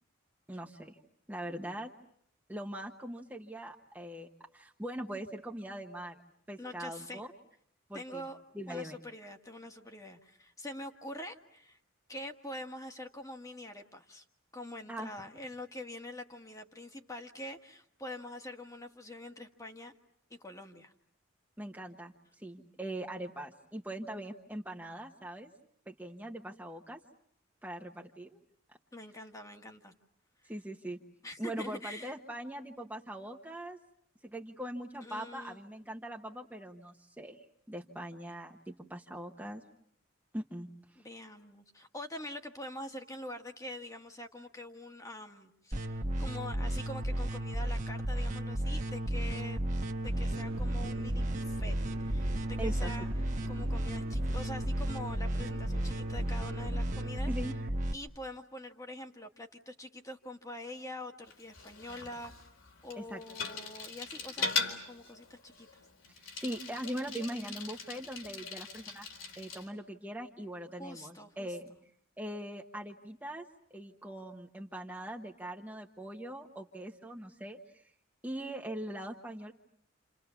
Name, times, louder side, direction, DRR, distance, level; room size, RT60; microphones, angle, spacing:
voice 1, 0.5-1.0 1.3-1.9 2.5-6.2 6.5-7.3 7.9-8.3 8.5-9.0 14.9-15.1 21.6-25.5 25.9-27.0 27.6-28.4 30.4-31.0 31.4-33.8 34.2-39.6 40.3-40.7 52.6-52.9 57.3-57.5 62.9-63.2 66.1-69.1 69.4-71.7 72.2-77.9 78.2-79.5, right 1 dB, 10° right, 1 dB, 1.2 m, -41 dB
voice 2, 6.6-7.2 7.9-8.4 8.7-11.8 12.1-14.2 14.5-19.9 20.3-20.9 28.9-29.9 31.2-32.1 35.0-35.6 40.9-49.6 50.0-53.1 53.5-57.3 57.9-62.3 62.8-65.8 70.8-71.5, left 1 dB, 15° left, 4 dB, 1.6 m, -45 dB
sound 1, 45.7-57.9, right 1 dB, 40° right, 1.4 m, -33 dB
sound 2, 50.0-57.1, equal, 70° right, 1.7 m, -44 dB
Bicycle, 61.3-69.7, left 4 dB, 75° left, 4.3 m, -40 dB
29.5 x 28.5 x 7.0 m, 0.69 s
head